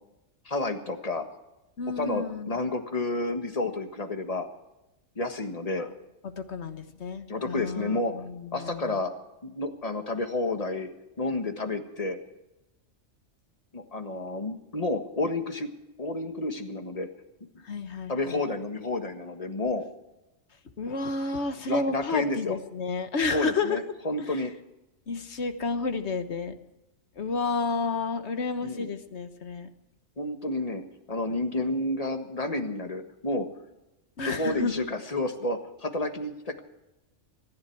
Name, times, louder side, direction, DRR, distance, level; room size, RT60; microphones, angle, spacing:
voice 1, 0.5-1.3 2.0-4.5 5.2-5.9 7.3-8.1 8.5-9.1 9.4-10.9 11.2-12.2 13.7-15.7 16.0-17.1 18.1-19.9 21.7-22.6 23.3-24.5 28.6-28.9 30.2-33.5 34.3-36.6, left 2 dB, 30° left, 6 dB, 1.6 m, -30 dB
voice 2, 1.8-2.6 5.8-5.9 6.2-9.0 17.6-18.4 20.8-23.8 24.2-24.4 25.1-26.5 27.2-29.7 34.2-34.9, left 4 dB, 65° left, 8 dB, 1.5 m, -31 dB
26.0 x 10.5 x 4.7 m, 0.94 s
omnidirectional pair, 1.3 m